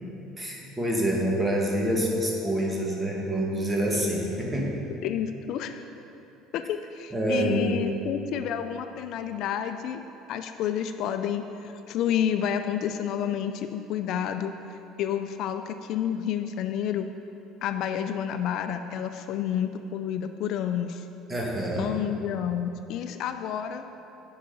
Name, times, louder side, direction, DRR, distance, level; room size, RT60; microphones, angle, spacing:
voice 1, 0.4-4.7 7.1-7.8 21.3-21.9, right 1 dB, 15° right, -2 dB, 1.6 m, -27 dB
voice 2, 5.0-5.8 6.5-10.0 10.3-14.5 15.0-17.1 17.6-21.0 21.8-23.8, left 9 dB, 60° left, 8 dB, 0.4 m, -30 dB
10.0 x 5.7 x 5.3 m, 2.9 s
cardioid pair, 120°, 0 cm